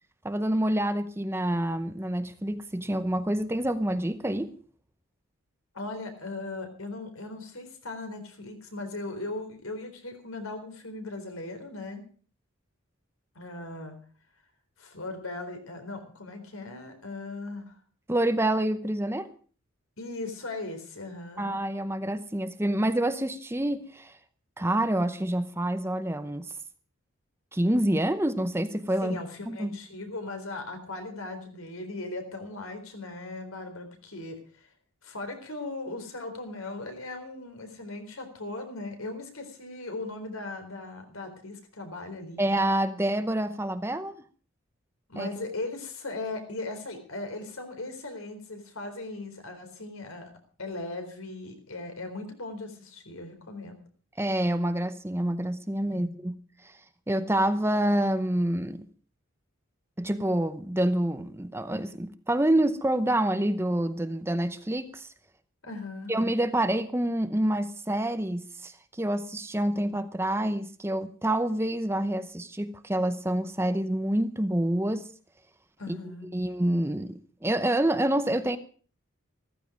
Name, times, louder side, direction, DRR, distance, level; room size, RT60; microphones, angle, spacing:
voice 1, 0.2-4.5 18.1-19.3 21.4-24.2 24.6-26.6 27.5-29.7 42.4-44.1 45.2-45.3 54.2-56.8 57.1-58.8 60.0-65.1 66.1-75.1 75.9-76.0 76.3-78.6, right 1 dB, 10° right, 0.7 m, -27 dB
voice 2, 5.7-12.0 13.4-14.0 14.8-17.7 20.0-21.5 29.0-34.7 35.0-42.5 45.1-50.3 50.6-53.8 55.9-56.1 65.6-66.1 75.8-76.3, left 2 dB, 80° left, 4.1 m, -38 dB
15.0 x 14.5 x 5.1 m
head